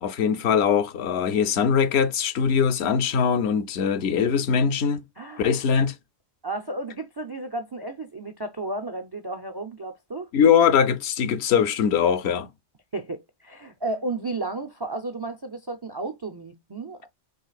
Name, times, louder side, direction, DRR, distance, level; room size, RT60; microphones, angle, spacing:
voice 1, 0.0-5.0 5.4-5.9 10.3-12.5, left 7 dB, 70° left, 0.8 m, -21 dB
voice 2, 5.2-5.6 6.4-10.3 12.9-17.1, right 2 dB, 40° right, 0.3 m, -33 dB
5.4 x 3.2 x 2.3 m
omnidirectional pair, 1.2 m